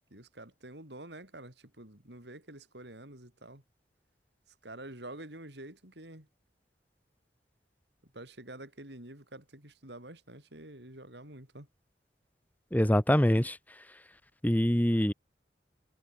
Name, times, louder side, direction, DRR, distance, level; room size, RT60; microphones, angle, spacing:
voice 1, 0.1-3.6 4.6-6.3 8.1-11.7, right 1 dB, 70° right, 5.8 m, -48 dB
voice 2, 12.7-13.6 14.4-15.1, equal, 10° left, 1.5 m, -24 dB
head